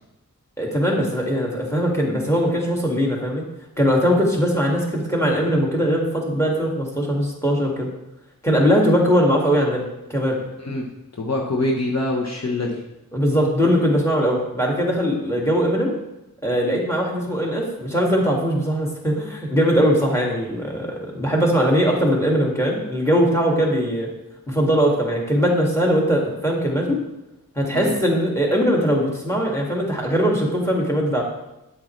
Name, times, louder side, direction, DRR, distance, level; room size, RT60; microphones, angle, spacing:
voice 1, 0.6-3.5 3.8-7.9 8.4-9.8 10.1-10.4 13.1-15.9 16.4-24.1 24.5-27.0 27.6-31.2, equal, 10° left, -1 dB, 2.2 m, -20 dB
voice 2, 11.2-12.8 27.7-27.9, left 2 dB, 45° left, -2 dB, 1.2 m, -24 dB
9.2 x 8.1 x 3.3 m, 0.94 s
wide cardioid pair, 60°, 36 cm